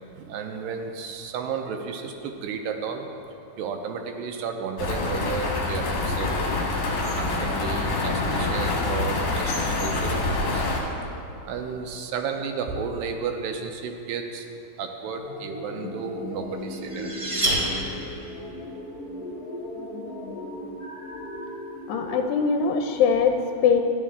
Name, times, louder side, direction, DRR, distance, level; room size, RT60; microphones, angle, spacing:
voice 1, 0.2-3.1 3.6-6.3 7.2-10.7 11.5-14.5 14.8-17.1, right 5 dB, 85° right, 4 dB, 2.3 m, -32 dB
sound 1, 4.8-10.8, left 2 dB, 60° left, 2.7 m, -26 dB
sound 2, 15.1-22.2, left 1 dB, 40° left, 2.8 m, -37 dB
sound 3, 16.4-18.4, right 1 dB, 45° right, 2.4 m, -28 dB
voice 2, 21.9-23.8, left 6 dB, 85° left, 4 dB, 2.3 m, -22 dB
12.5 x 10.5 x 3.5 m, 2.6 s
omnidirectional pair, 4.1 m